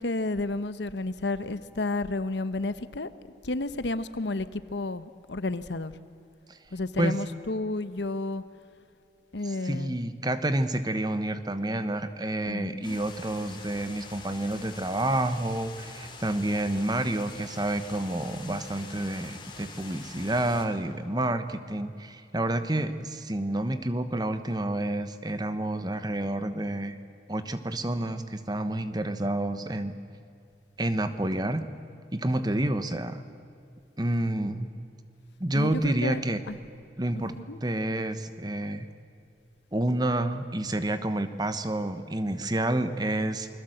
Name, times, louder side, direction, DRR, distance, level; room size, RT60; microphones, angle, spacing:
voice 1, 0.0-3.1 3.4-5.9 6.7-8.4 9.3-10.0 12.5-13.0 35.5-36.6 37.1-37.6, left 2 dB, 80° left, 13 dB, 1.0 m, -31 dB
voice 2, 9.4-27.0 27.3-29.9 30.8-31.6 32.1-33.2 34.0-34.7 35.4-36.4 37.0-37.4 37.6-38.9 39.7-43.5, right 1 dB, 25° right, 10 dB, 1.1 m, -29 dB
sound 1, 12.8-20.7, left 4 dB, 25° left, 3.0 m, -45 dB
28.5 x 21.0 x 8.0 m, 2.4 s
head